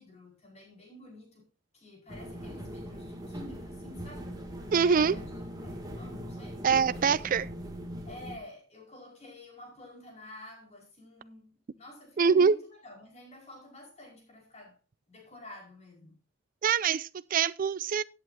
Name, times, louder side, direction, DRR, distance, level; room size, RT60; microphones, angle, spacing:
voice 1, 0.0-1.4 1.7-4.4 4.8-5.2 5.6-6.7 8.0-14.8 15.1-16.2, left 2 dB, 35° left, 4.9 m, -49 dB
sound 1, 2.1-8.3, equal, 20° right, 2.5 m, -41 dB
voice 2, 4.7-5.1 6.6-7.5 12.2-12.6 16.6-18.0, right 6 dB, 45° right, 0.4 m, -24 dB
16.5 x 8.3 x 2.7 m
head